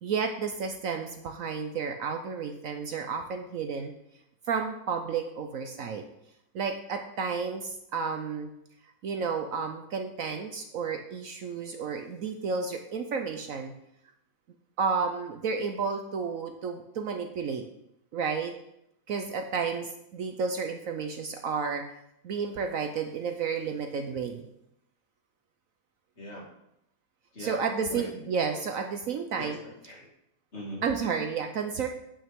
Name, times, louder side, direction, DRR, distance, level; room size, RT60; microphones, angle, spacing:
voice 1, 0.0-3.9 4.5-6.0 6.5-8.5 9.0-13.7 14.8-17.7 18.1-18.5 19.1-21.8 22.2-24.5 27.4-29.6 30.8-31.9, right 5 dB, 65° right, 5 dB, 1.0 m, -31 dB
voice 2, 26.2-26.5 27.3-27.6 27.9-28.2 29.3-30.1 30.5-30.8, equal, 40° left, -3 dB, 2.7 m, -40 dB
8.9 x 8.8 x 3.6 m, 0.79 s
omnidirectional pair, 1.7 m